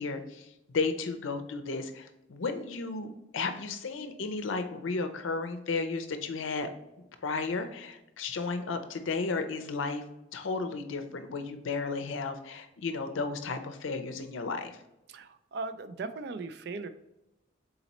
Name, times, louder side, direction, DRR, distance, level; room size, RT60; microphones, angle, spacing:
voice 1, 0.0-6.8 7.2-10.0 10.3-14.8, left 4 dB, 85° left, 8 dB, 0.5 m, -33 dB
voice 2, 15.1-16.9, right 3 dB, 55° right, 11 dB, 0.3 m, -38 dB
4.0 x 4.0 x 2.9 m, 0.90 s
head